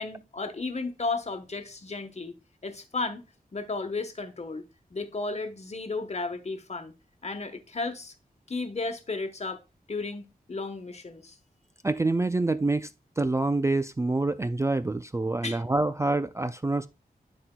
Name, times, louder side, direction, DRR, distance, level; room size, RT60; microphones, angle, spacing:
voice 1, 0.0-2.3 2.6-3.2 3.5-4.6 4.9-6.9 7.2-8.1 8.5-9.6 9.9-11.4 15.4-15.6, left 3 dB, 45° left, 1.2 m, -34 dB
voice 2, 11.8-12.9 13.2-16.9, right 2 dB, 20° right, 0.3 m, -26 dB
12.5 x 4.4 x 2.2 m
wide cardioid pair, 85°, 16 cm